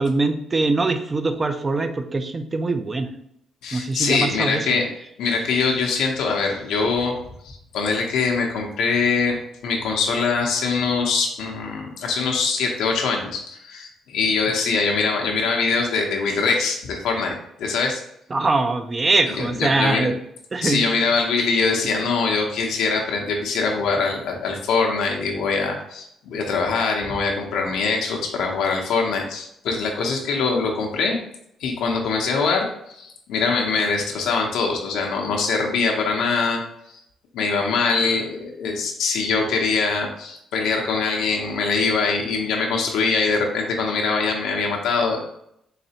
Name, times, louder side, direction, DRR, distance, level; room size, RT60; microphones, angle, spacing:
voice 1, 0.0-3.1 3.7-4.6 18.3-20.2 20.5-20.8, right 3 dB, 25° right, 8 dB, 0.4 m, -22 dB
voice 2, 3.6-4.9 5.2-7.1 7.4-9.4 9.6-18.0 19.3-20.1 20.6-31.2 31.6-36.6 37.3-45.2, left 4 dB, 85° left, 0 dB, 0.7 m, -23 dB
4.0 x 3.2 x 2.8 m, 0.74 s
cardioid pair, 110°, 0 cm